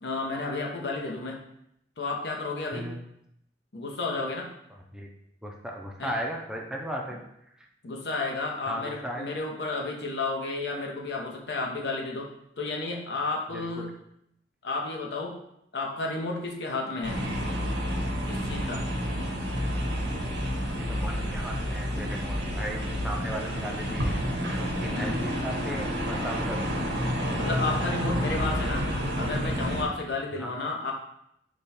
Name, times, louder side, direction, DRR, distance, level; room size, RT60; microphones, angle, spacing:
voice 1, 0.0-1.4 2.0-2.9 3.7-4.5 6.0-6.1 7.8-12.3 12.6-13.9 14.6-15.4 15.7-17.2 18.3-18.8 24.9-25.1 27.4-28.9 29.2-30.9, left 3 dB, 70° left, 0 dB, 0.8 m, -32 dB
voice 2, 2.7-3.0 4.9-5.1 5.4-7.2 8.7-9.2 13.5-13.9 17.0-17.1 20.7-26.7 30.4-30.5, equal, 5° right, 0 dB, 0.5 m, -36 dB
sound 1, 17.0-29.8, equal, 90° right, 0.9 m, -29 dB
5.1 x 2.3 x 4.2 m, 0.77 s
head